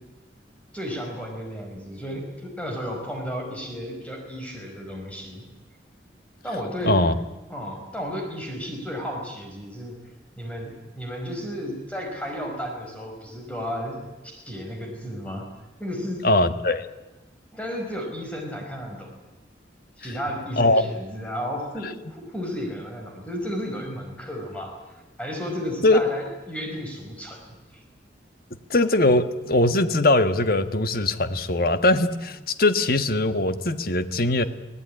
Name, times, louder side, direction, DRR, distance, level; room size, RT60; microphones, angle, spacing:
voice 1, 0.7-5.4 6.4-7.0 7.5-10.0 10.4-14.0 14.2-15.4 15.8-16.2 17.5-19.1 20.0-27.8, equal, 5° left, 1 dB, 5.1 m, -33 dB
voice 2, 6.8-7.1 16.2-16.9 20.6-20.8 25.8-26.0 28.7-34.4, left 2 dB, 50° left, 10 dB, 1.4 m, -21 dB
24.0 x 17.5 x 9.9 m, 1.2 s
head